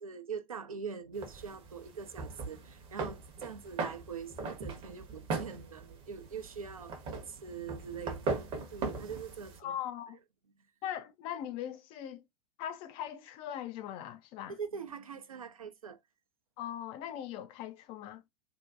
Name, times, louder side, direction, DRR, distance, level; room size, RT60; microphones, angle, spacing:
voice 1, 0.0-8.4 8.7-9.7 14.5-16.0, right 6 dB, 75° right, 0.5 m, -43 dB
sound 1, 1.1-9.6, right 3 dB, 30° right, 0.7 m, -39 dB
voice 2, 9.6-10.2 10.8-12.2 12.6-14.6 16.6-18.2, left 10 dB, 30° left, 0.4 m, -40 dB
2.6 x 2.1 x 2.3 m
figure-of-eight pair, 90°, 18 cm